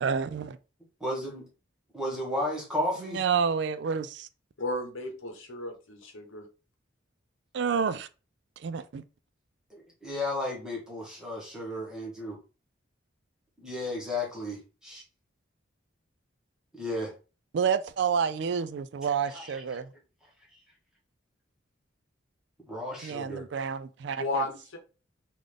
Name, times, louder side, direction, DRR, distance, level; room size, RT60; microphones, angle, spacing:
voice 1, 0.0-0.6 3.0-4.3 7.5-8.1 8.6-9.0 17.5-19.9 23.0-24.4, right 6 dB, 60° right, 0.3 m, -29 dB
voice 2, 1.0-1.4 1.9-3.2 9.7-12.4 13.6-15.0 16.7-17.1 19.3-19.5 22.7-23.4, left 1 dB, 5° right, 1.1 m, -33 dB
voice 3, 4.6-6.5 24.1-24.8, left 1 dB, 85° left, 0.9 m, -34 dB
3.8 x 2.5 x 3.3 m
head